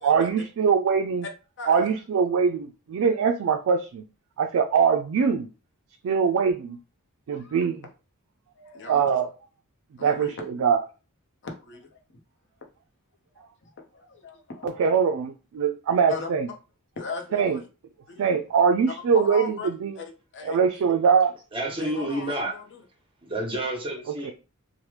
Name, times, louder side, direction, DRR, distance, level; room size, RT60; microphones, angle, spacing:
voice 1, 0.0-1.3 1.7-4.0 4.4-5.5 6.0-6.8 7.3-7.8 8.9-9.3 10.0-10.8 14.6-16.5 17.3-17.6 18.2-20.0 20.5-21.3 24.2-24.3, right 6 dB, 65° right, 5 dB, 0.3 m, -22 dB
voice 2, 1.6-1.9 6.2-6.4 7.3-7.7 8.5-9.2 10.0-10.3 11.4-12.0 13.3-14.8 16.1-16.3 17.0-17.6 18.1-18.2 18.9-19.7 20.0-20.6 21.8-22.8, left 4 dB, 55° left, 3 dB, 0.7 m, -38 dB
voice 3, 21.5-22.5 23.2-24.3, right 1 dB, 25° right, 0 dB, 0.9 m, -29 dB
2.9 x 2.1 x 3.2 m, 0.32 s
head